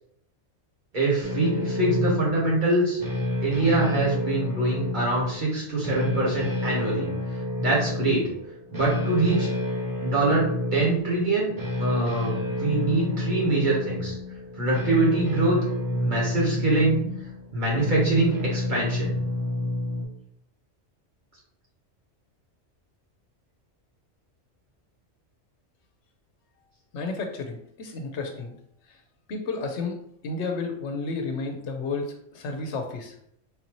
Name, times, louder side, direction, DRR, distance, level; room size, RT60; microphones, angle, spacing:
voice 1, 0.9-3.0 3.4-7.1 7.6-8.3 8.7-9.5 10.0-11.5 11.8-14.1 14.6-15.6 15.9-17.0 17.5-19.1, right 2 dB, 40° right, -5 dB, 1.4 m, -24 dB
sound 1, 1.2-20.1, left 2 dB, 20° right, 0.6 m, -30 dB
voice 2, 26.9-28.5 29.3-30.0 30.2-33.1, left 3 dB, 75° left, 4 dB, 0.9 m, -31 dB
3.6 x 2.7 x 2.9 m, 0.71 s
omnidirectional pair, 1.2 m